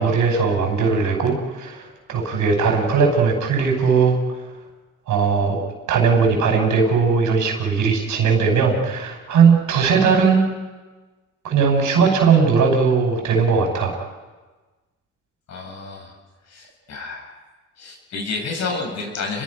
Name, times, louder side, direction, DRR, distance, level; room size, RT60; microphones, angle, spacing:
voice 1, 0.0-4.2 5.1-10.4 11.4-14.0, right 5 dB, 75° right, 3 dB, 5.9 m, -18 dB
voice 2, 15.5-16.2 16.5-17.4 17.8-19.4, left 4 dB, 65° left, 1 dB, 7.8 m, -30 dB
30.0 x 22.0 x 5.5 m, 1.2 s
cardioid pair, 90°, 30 cm